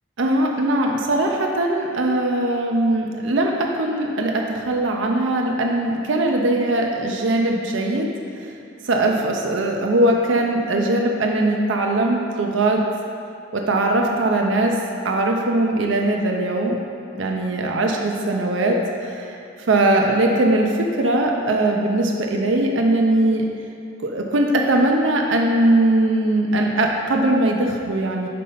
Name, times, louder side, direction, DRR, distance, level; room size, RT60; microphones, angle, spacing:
voice 1, 0.2-8.1 8.8-12.8 13.5-14.7 15.0-16.8 17.2-18.8 19.0-19.4 19.7-23.4 24.0-28.3, right 1 dB, 70° right, 1 dB, 0.5 m, -20 dB
5.3 x 4.2 x 5.5 m, 2.7 s
head